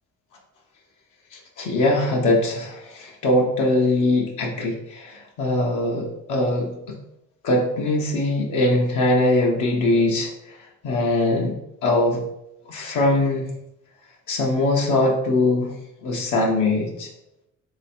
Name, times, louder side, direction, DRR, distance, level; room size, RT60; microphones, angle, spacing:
voice 1, 1.3-6.9 7.4-10.6 10.8-11.5 11.8-12.2 12.7-13.5 14.3-15.7 16.0-17.1, left 2 dB, 80° left, -1 dB, 0.9 m, -22 dB
3.2 x 3.0 x 4.3 m, 0.83 s
cardioid pair, 90°, 30 cm